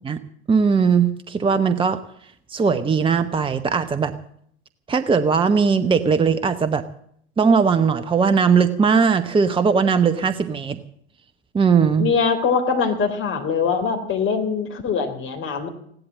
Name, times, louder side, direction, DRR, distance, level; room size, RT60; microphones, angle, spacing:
voice 1, 0.5-2.0 2.5-4.1 4.9-6.8 7.4-10.8 11.5-12.1, right 5 dB, 15° right, 11 dB, 0.9 m, -19 dB
voice 2, 12.0-15.7, left 5 dB, 35° left, 5 dB, 3.6 m, -22 dB
16.5 x 12.0 x 7.4 m, 0.67 s
figure-of-eight pair, 70°, 34 cm